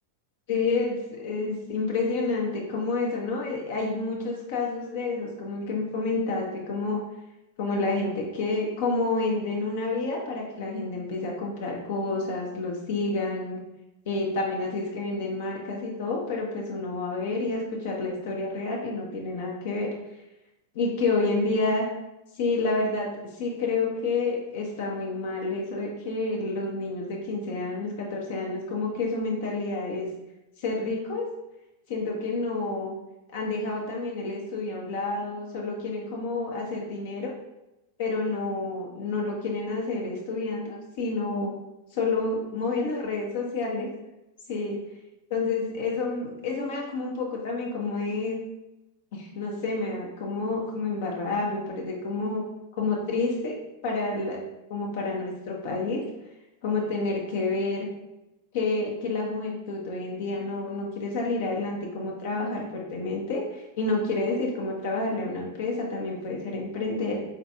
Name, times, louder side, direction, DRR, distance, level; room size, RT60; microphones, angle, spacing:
voice 1, 0.5-7.0 7.6-13.6 14.1-19.9 20.7-21.9 22.4-23.1 23.4-30.1 30.6-31.3 31.9-32.9 33.3-37.3 38.0-41.5 41.9-43.9 44.5-44.8 45.3-48.4 49.1-52.4 52.8-53.5 53.8-54.4 54.7-56.0 56.6-57.9 58.5-67.2, left 3 dB, 55° left, -1 dB, 0.7 m, -29 dB
4.1 x 3.8 x 2.3 m, 0.94 s
figure-of-eight pair, 90°, 0 cm